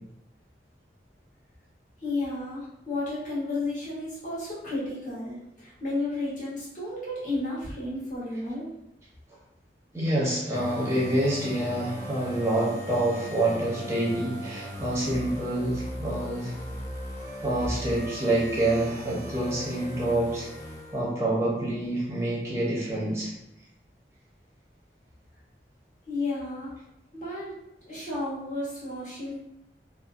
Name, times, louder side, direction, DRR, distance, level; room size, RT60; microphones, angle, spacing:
voice 1, 2.0-8.7 26.1-26.7 27.1-27.5 27.9-29.4, left 2 dB, 45° left, -8 dB, 1.0 m, -32 dB
voice 2, 9.9-16.6 17.4-20.5 20.9-23.3, right 1 dB, 15° right, -6 dB, 0.7 m, -27 dB
sound 1, 10.5-21.3, equal, 15° left, 0.4 m, -38 dB
2.6 x 2.1 x 2.4 m, 0.83 s
head